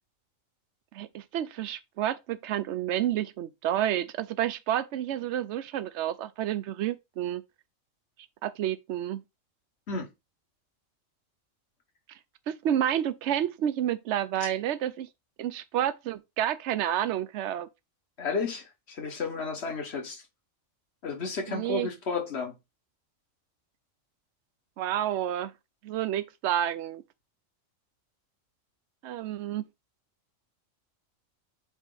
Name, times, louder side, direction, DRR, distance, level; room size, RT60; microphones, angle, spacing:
voice 1, 0.9-7.4 8.4-9.2 12.1-12.2 12.5-15.1 15.4-17.7 21.5-21.9 24.8-25.5 25.8-27.0 29.0-29.7, right 11 dB, 65° right, 0.9 m, -30 dB
voice 2, 18.2-20.2 21.0-22.5, left 4 dB, 55° left, 1.7 m, -32 dB
8.0 x 3.0 x 3.9 m
omnidirectional pair, 1.4 m